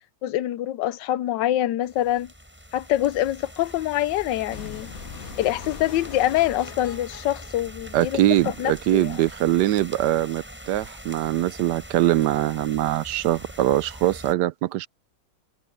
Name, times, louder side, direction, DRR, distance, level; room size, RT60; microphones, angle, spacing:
voice 1, 0.2-2.3 2.7-4.9 5.4-8.2 8.4-9.1, left 13 dB, 80° left, 1.3 m, -25 dB
sound 1, 1.8-14.4, equal, 5° right, 7.9 m, -43 dB
sound 2, 4.5-8.5, left 8 dB, 55° left, 1.4 m, -42 dB
voice 2, 7.9-14.9, right 14 dB, 75° right, 1.1 m, -22 dB
omnidirectional pair, 1.9 m